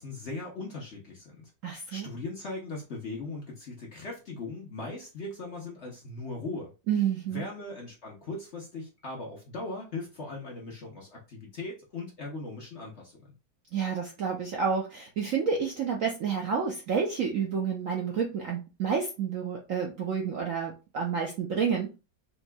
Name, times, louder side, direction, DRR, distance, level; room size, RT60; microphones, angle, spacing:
voice 1, 0.0-1.5 1.9-6.7 7.3-13.3, left 3 dB, 50° left, -2 dB, 0.9 m, -39 dB
voice 2, 1.6-2.1 6.9-7.4 13.7-21.9, right 6 dB, 65° right, 0 dB, 0.8 m, -29 dB
4.4 x 2.9 x 2.2 m, 0.30 s
omnidirectional pair, 2.0 m